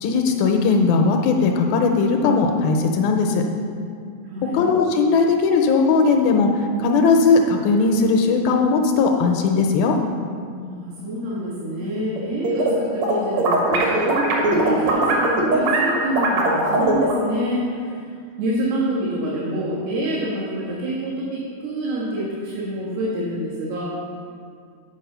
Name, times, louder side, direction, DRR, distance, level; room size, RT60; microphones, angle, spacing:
voice 1, 0.0-3.4 4.5-6.5 6.8-10.0, left 4 dB, 80° left, 3 dB, 2.3 m, -18 dB
voice 2, 4.2-4.6 10.5-23.8, right 1 dB, 80° right, -10 dB, 3.5 m, -27 dB
sound 1, 12.2-12.7 13.0-17.2, right 2 dB, 60° right, 2.0 m, -20 dB
9.5 x 4.8 x 6.7 m, 2.2 s
omnidirectional pair, 4.5 m